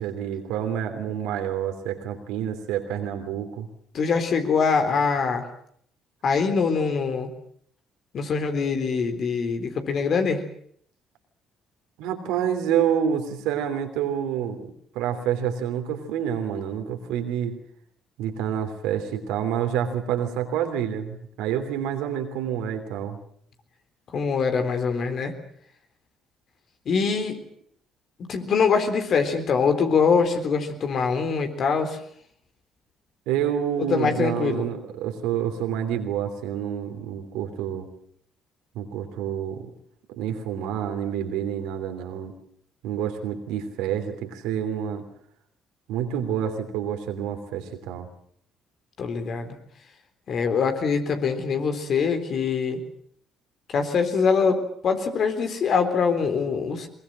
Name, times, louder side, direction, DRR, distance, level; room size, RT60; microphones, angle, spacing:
voice 1, 0.0-3.7 12.0-17.6 18.2-23.2 33.3-37.9 38.7-39.7 40.1-42.3 42.8-45.0 45.9-48.1, right 9 dB, 75° right, 6 dB, 3.1 m, -28 dB
voice 2, 3.9-5.4 6.2-7.3 8.1-10.4 24.1-25.3 26.9-27.4 28.2-32.0 33.8-34.7 49.0-49.5 50.3-52.8 53.7-56.9, left 5 dB, 55° left, 7 dB, 3.8 m, -23 dB
22.0 x 21.0 x 7.7 m, 0.65 s
hypercardioid pair, 55°, 0 cm